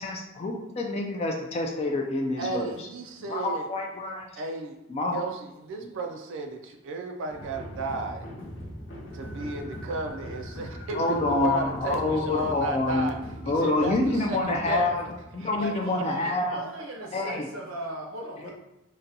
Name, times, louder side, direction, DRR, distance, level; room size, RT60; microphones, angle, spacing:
voice 1, 0.0-2.7 3.3-4.3 4.9-5.2 10.9-13.1 13.5-15.0 15.3-16.6 17.1-17.5 18.4-18.5, left 2 dB, 30° left, 2 dB, 0.3 m, -27 dB
voice 2, 2.4-3.7 4.3-4.8 5.1-8.3 9.1-13.2 13.4-14.9 15.4-15.7, right 3 dB, 65° right, 4 dB, 0.3 m, -34 dB
sound 1, 7.3-15.8, equal, 65° left, 0.7 m, -40 dB
voice 3, 15.5-18.5, right 1 dB, 80° right, -1 dB, 0.8 m, -38 dB
3.9 x 2.2 x 2.6 m, 0.91 s
head